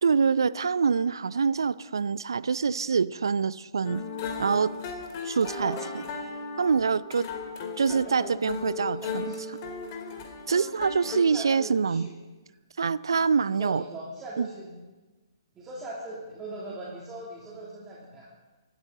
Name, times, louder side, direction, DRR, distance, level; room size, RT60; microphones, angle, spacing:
voice 1, 0.0-4.0 4.4-4.7 5.2-6.0 6.6-7.2 7.8-9.3 10.5-12.1 12.8-13.8 14.4-14.5, right 5 dB, 70° right, 18 dB, 0.5 m, -25 dB
sound 1, 3.8-11.2, left 5 dB, 35° left, 2.4 m, -36 dB
voice 2, 5.4-6.0 7.8-9.6 11.0-12.1 13.6-14.7 15.5-18.3, right 2 dB, 15° right, -6 dB, 2.6 m, -40 dB
24.5 x 12.5 x 3.9 m, 1.2 s
figure-of-eight pair, 125°, 2 cm